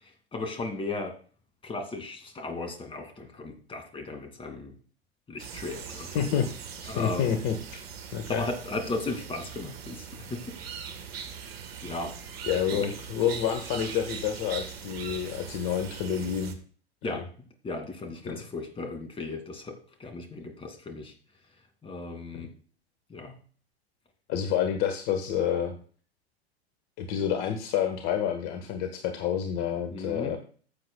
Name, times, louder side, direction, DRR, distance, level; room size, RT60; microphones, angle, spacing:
voice 1, 0.3-1.1 1.6-4.7 5.3-6.2 6.9-7.3 8.3-10.4 11.8-12.1 12.7-12.9 17.0-17.2 17.6-21.1 21.8-22.5 23.1-23.4 29.9-30.3, left 2 dB, 15° left, 5 dB, 2.4 m, -36 dB
sound 1, 5.4-16.5, right 7 dB, 65° right, 1.5 m, -41 dB
voice 2, 5.9-6.5 6.8-7.8 8.1-8.4 12.5-16.6 17.0-17.2 18.2-18.4 22.3-22.4 24.3-25.8 27.0-30.4, left 8 dB, 45° left, 6 dB, 1.3 m, -29 dB
15.0 x 7.7 x 2.3 m, 0.42 s
figure-of-eight pair, 95°, 33 cm